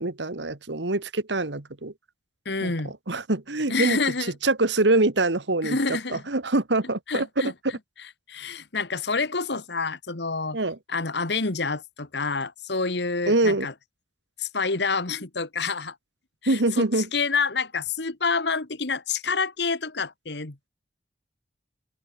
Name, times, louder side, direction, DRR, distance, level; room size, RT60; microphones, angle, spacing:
voice 1, 0.0-1.9 2.6-2.7 3.1-4.0 4.4-5.8 6.1-7.3 10.5-10.8 13.3-13.7 16.5-17.1, right 2 dB, 75° right, 1.8 m, -24 dB
voice 2, 2.4-2.9 3.7-4.3 5.6-6.2 7.1-10.6 10.9-13.7 14.4-15.9 16.4-20.7, left 4 dB, 70° left, 1.8 m, -28 dB
open air
head